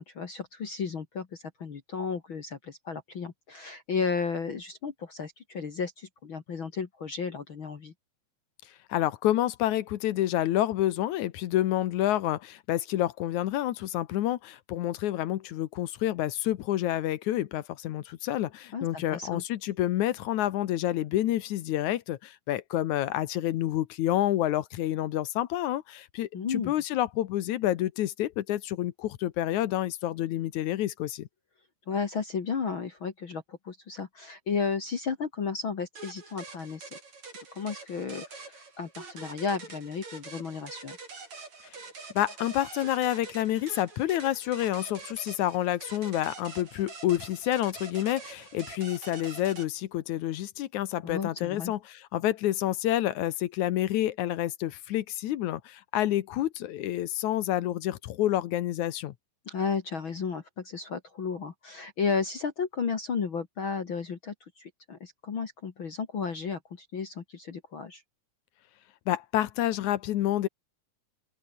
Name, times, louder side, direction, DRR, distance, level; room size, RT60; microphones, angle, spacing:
voice 1, 0.0-7.9 18.7-19.4 26.3-26.7 31.9-37.0 37.5-41.0 51.0-51.7 59.5-68.0, left 5 dB, 45° left, 2.3 m, -33 dB
voice 2, 8.9-31.3 42.2-59.1 69.1-70.5, left 13 dB, 70° left, 2.2 m, -28 dB
sound 1, 36.0-49.7, right 4 dB, 55° right, 6.9 m, -45 dB
open air
omnidirectional pair, 3.8 m